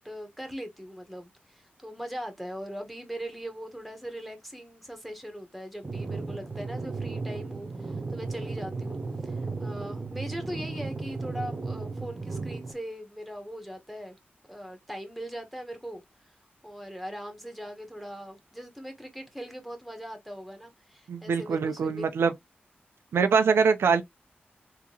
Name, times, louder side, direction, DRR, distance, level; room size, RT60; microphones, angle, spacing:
voice 1, 0.0-14.2 14.5-16.0 16.6-22.2, equal, ahead, 1.2 m, -40 dB
sound 1, 5.8-12.7, right 3 dB, 35° right, 0.7 m, -35 dB
voice 2, 21.1-22.3 23.1-24.0, right 5 dB, 90° right, 0.4 m, -23 dB
3.7 x 2.8 x 2.8 m
wide cardioid pair, 75°, 4 cm